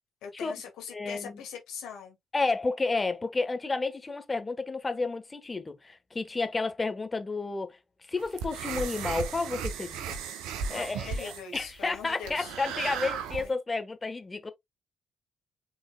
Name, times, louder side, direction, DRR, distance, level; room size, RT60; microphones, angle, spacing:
voice 1, 0.2-2.2 10.7-12.5 13.4-13.6, left 7 dB, 75° left, 2.0 m, -42 dB
voice 2, 0.9-1.4 2.3-7.8 8.1-10.2 10.5-14.5, left 3 dB, 30° left, 1.3 m, -31 dB
sound 1, 8.2-13.5, right 6 dB, 75° right, 0.8 m, -36 dB
5.3 x 3.9 x 2.3 m
hypercardioid pair, 45°, 0 cm